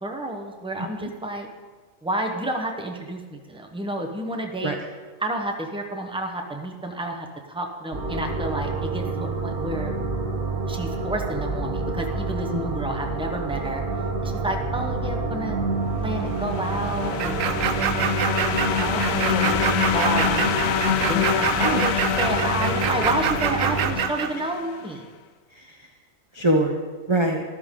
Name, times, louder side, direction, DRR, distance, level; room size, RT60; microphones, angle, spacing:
voice 1, 0.0-1.5 2.0-4.8 5.2-10.0 10.7-13.8 14.2-15.6 16.0-25.1, right 1 dB, 5° right, 3 dB, 0.9 m, -30 dB
voice 2, 0.8-1.1 4.6-4.8 12.5-12.9 21.6-21.8 25.5-25.9 26.3-26.8 27.1-27.4, right 1 dB, 25° right, 2 dB, 0.7 m, -24 dB
sound 1, 7.9-23.9, right 3 dB, 40° right, 1.5 m, -28 dB
sound 2, 16.2-24.8, left 8 dB, 80° left, 1.1 m, -26 dB
sound 3, 17.2-24.3, right 9 dB, 75° right, 1.0 m, -26 dB
13.5 x 12.5 x 3.8 m, 1.4 s
omnidirectional pair, 1.4 m